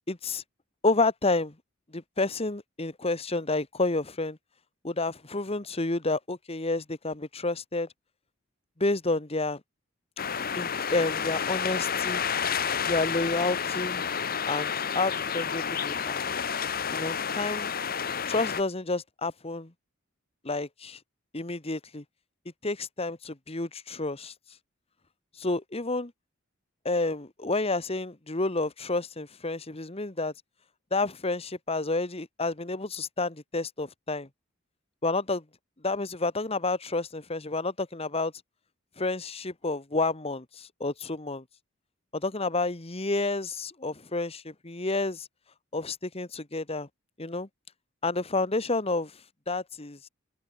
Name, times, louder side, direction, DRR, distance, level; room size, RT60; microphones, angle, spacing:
voice 1, 0.1-0.4 0.8-1.5 1.9-4.4 4.8-7.9 8.8-9.6 10.6-12.2 12.9-14.0 14.5-16.2 16.9-17.7 18.3-19.7 20.4-21.0 21.3-22.0 22.6-24.3 25.4-26.1 26.8-30.3 30.9-34.3 35.0-35.4 35.8-38.3 39.0-41.4 42.1-45.3 45.7-46.9 47.2-47.5 48.0-49.1 49.5-50.0, left 3 dB, 30° left, 1.5 m, -30 dB
sound 1, 10.2-18.6, left 7 dB, 45° left, 1.3 m, -30 dB
open air
head